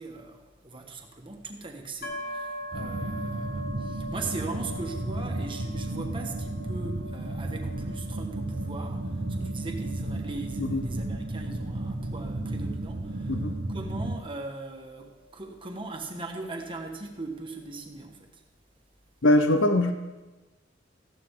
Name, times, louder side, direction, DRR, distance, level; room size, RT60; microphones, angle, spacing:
voice 1, 0.0-13.4 13.7-18.4, right 3 dB, 25° right, 2 dB, 1.5 m, -40 dB
sound 1, 2.0-15.7, equal, 55° left, 1.5 m, -43 dB
sound 2, 2.7-14.2, right 2 dB, 55° right, 0.8 m, -33 dB
voice 2, 19.2-19.9, left 1 dB, 85° left, 7 dB, 0.9 m, -22 dB
15.0 x 11.5 x 3.8 m, 1.2 s
head